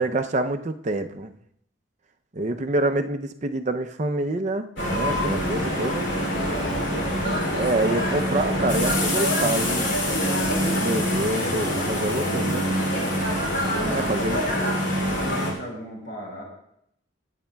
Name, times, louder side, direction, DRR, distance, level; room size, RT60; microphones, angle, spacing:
voice 1, 0.0-1.3 2.3-6.1 7.5-10.0 10.7-12.7 13.9-14.4, right 2 dB, 35° right, 7 dB, 0.5 m, -26 dB
sound 1, 4.8-15.5, equal, 70° left, 2.9 m, -25 dB
voice 2, 6.3-7.6 10.8-11.0 11.3-11.9 13.7-14.5 15.2-16.4, equal, 50° left, -1 dB, 4.0 m, -36 dB
24.5 x 8.2 x 2.3 m, 0.74 s
head